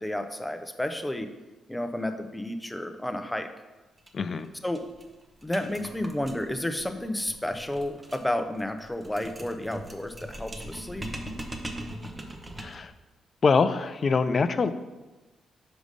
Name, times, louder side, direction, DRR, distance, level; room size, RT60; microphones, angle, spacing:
voice 1, 0.0-1.3 1.7-3.5 4.6-4.8 5.4-11.1, left 1 dB, 10° left, 7 dB, 0.7 m, -31 dB
sound 1, 4.0-4.1 4.4-4.5 4.8-12.9, right 1 dB, 25° right, 1.0 m, -41 dB
voice 2, 4.1-4.5 12.6-12.9 13.4-14.7, left 5 dB, 50° left, 12 dB, 0.4 m, -24 dB
5.3 x 5.0 x 5.0 m, 1.1 s
supercardioid pair, 60°, 0 cm